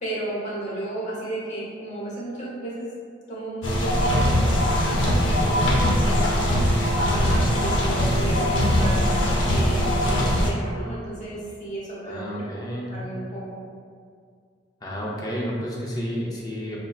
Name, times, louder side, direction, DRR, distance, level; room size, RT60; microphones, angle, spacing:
voice 1, 0.0-2.9 3.3-5.6 6.0-6.5 7.0-9.1 9.4-13.6, right 1 dB, 40° left, -7 dB, 1.0 m, -33 dB
sound 1, 3.6-10.5, equal, 80° left, 0.7 m, -21 dB
voice 2, 12.0-12.9 14.8-16.8, equal, 20° left, -4 dB, 0.5 m, -31 dB
5.5 x 2.2 x 2.3 m, 2.1 s
head